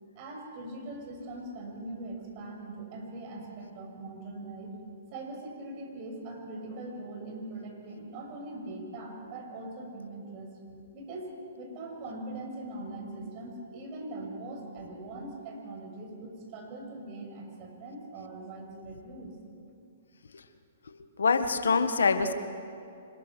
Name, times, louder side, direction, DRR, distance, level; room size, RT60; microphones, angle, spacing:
voice 1, 0.1-4.8 5.1-10.5 10.9-19.3, right 2 dB, 40° right, 1 dB, 6.4 m, -41 dB
voice 2, 21.2-22.3, left 4 dB, 75° left, 9 dB, 1.5 m, -25 dB
25.5 x 21.5 x 6.3 m, 2.6 s
hypercardioid pair, 125°, 0 cm